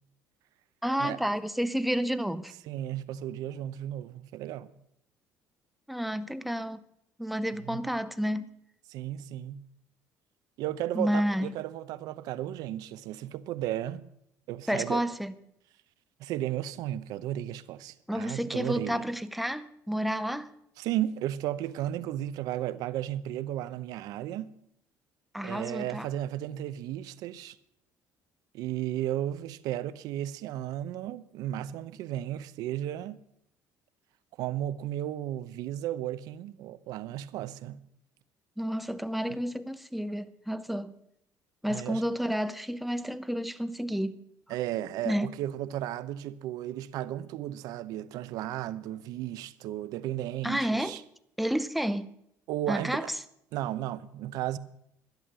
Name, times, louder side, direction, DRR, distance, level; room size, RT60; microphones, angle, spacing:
voice 1, 0.8-2.5 5.9-6.8 7.2-8.5 10.9-11.5 14.7-15.3 18.1-20.5 25.3-26.1 38.6-40.9 41.6-44.2 45.0-45.3 50.4-51.0 51.4-52.1 52.7-53.1, equal, ahead, 0.7 m, -30 dB
voice 2, 2.7-4.7 7.6-7.9 8.9-9.6 10.6-14.0 14.5-15.0 16.2-19.1 20.8-24.5 25.4-27.6 28.5-33.2 34.4-37.8 41.7-42.0 44.5-51.0 52.5-53.1 53.5-54.6, right 12 dB, 75° right, 0.7 m, -34 dB
12.0 x 11.0 x 6.7 m
cardioid pair, 130°, 7 cm